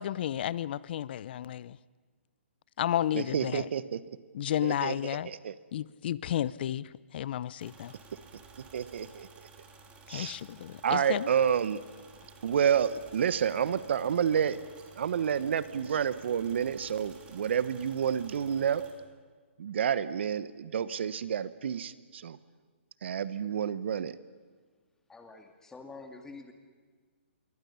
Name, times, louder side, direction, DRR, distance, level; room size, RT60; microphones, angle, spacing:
voice 1, 0.0-1.8 2.8-3.7 4.3-5.3 5.7-7.9 10.1-11.3, left 11 dB, 50° left, 21 dB, 0.6 m, -32 dB
voice 2, 3.1-4.0 4.6-5.5 8.7-9.5 10.1-10.4 10.8-11.8 12.4-14.6 15.0-18.8 19.6-22.4 23.0-24.2, right 8 dB, 65° right, 15 dB, 1.1 m, -29 dB
sound 1, 7.6-18.9, right 4 dB, 15° right, 2.9 m, -54 dB
voice 3, 25.1-26.5, left 3 dB, 10° left, 5 dB, 2.0 m, -47 dB
26.5 x 23.0 x 5.7 m, 1.5 s
hypercardioid pair, 140°, 7 cm